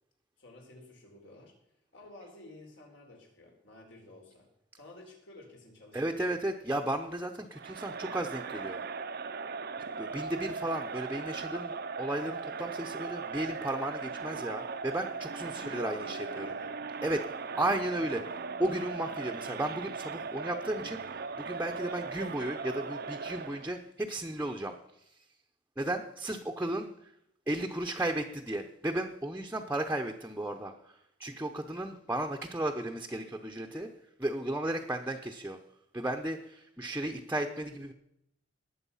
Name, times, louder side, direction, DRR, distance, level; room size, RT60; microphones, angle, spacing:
voice 1, 0.4-1.5 1.9-4.5 4.7-6.3 15.5-16.8 17.5-18.3, left 1 dB, 70° left, 1 dB, 4.3 m, -52 dB
voice 2, 5.9-8.8 10.0-16.5 17.0-17.3 17.6-18.2 18.6-24.7 25.8-27.1 27.5-33.9 34.2-35.6 35.9-37.9, right 1 dB, 10° right, 3 dB, 0.8 m, -34 dB
Crowd, 7.5-23.7, right 5 dB, 55° right, 0.7 m, -39 dB
19.5 x 7.9 x 5.6 m, 0.77 s
head